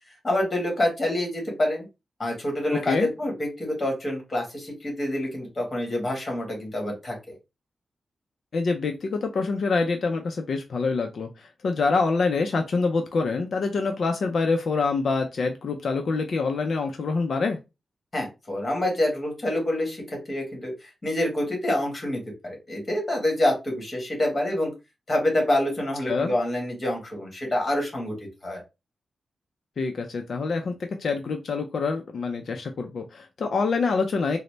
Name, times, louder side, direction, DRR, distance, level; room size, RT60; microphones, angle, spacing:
voice 1, 0.2-1.9 2.2-7.1 18.1-24.7 25.1-28.2 28.4-28.6, left 1 dB, 25° left, 0 dB, 1.4 m, -27 dB
voice 2, 8.5-17.6 26.1-26.3 29.8-34.4, left 4 dB, 55° left, 4 dB, 0.4 m, -26 dB
3.9 x 2.1 x 3.2 m, 0.25 s
wide cardioid pair, 175°, 0 cm